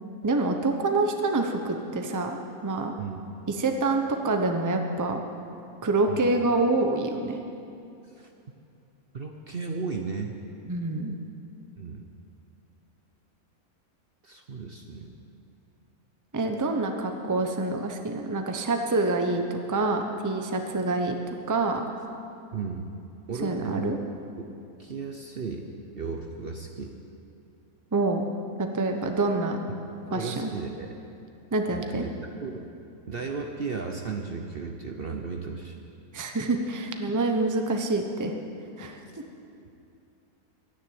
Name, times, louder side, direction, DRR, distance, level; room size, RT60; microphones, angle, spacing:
voice 1, 0.2-2.9 3.5-5.2 5.8-7.4 10.7-11.2 16.3-21.2 21.5-21.9 23.4-24.0 27.9-28.2 28.6-29.6 30.1-30.5 31.5-32.1 36.1-38.3 38.8-39.0, right 2 dB, 15° right, 4 dB, 0.8 m, -26 dB
voice 2, 9.1-10.3 11.8-12.0 14.2-15.1 22.5-22.9 23.3-24.0 24.4-24.5 24.8-25.7 26.0-27.0 30.1-31.0 31.7-32.1 32.4-32.7 33.1-35.8 39.6-39.7, right 4 dB, 45° right, 3 dB, 0.9 m, -35 dB
12.5 x 10.0 x 8.6 m, 2.6 s
omnidirectional pair, 1.6 m